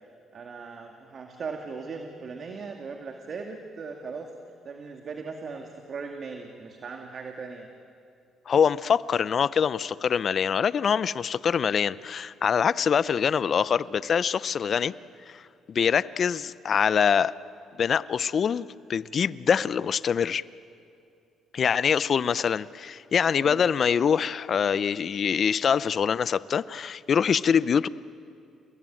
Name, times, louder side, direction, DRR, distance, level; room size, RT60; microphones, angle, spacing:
voice 1, 0.3-4.3 4.6-7.7 23.4-23.6, right 4 dB, 55° right, 3 dB, 2.2 m, -38 dB
voice 2, 8.5-14.9 15.3-15.4 15.7-17.3 17.8-20.4 21.5-27.9, left 7 dB, 55° left, 18 dB, 0.7 m, -24 dB
30.0 x 21.0 x 9.2 m, 2.4 s
supercardioid pair, 60°, 0 cm